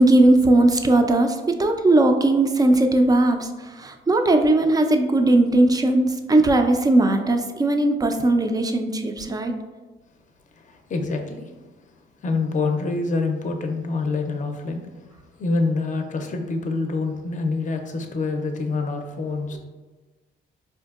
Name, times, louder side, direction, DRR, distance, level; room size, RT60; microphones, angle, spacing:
voice 1, 0.0-9.5, right 2 dB, 20° right, 5 dB, 0.3 m, -18 dB
voice 2, 10.6-11.5 12.2-14.9 15.4-19.6, left 3 dB, 40° left, 4 dB, 0.5 m, -26 dB
4.3 x 2.6 x 2.3 m, 1.2 s
cardioid pair, 90°, 20 cm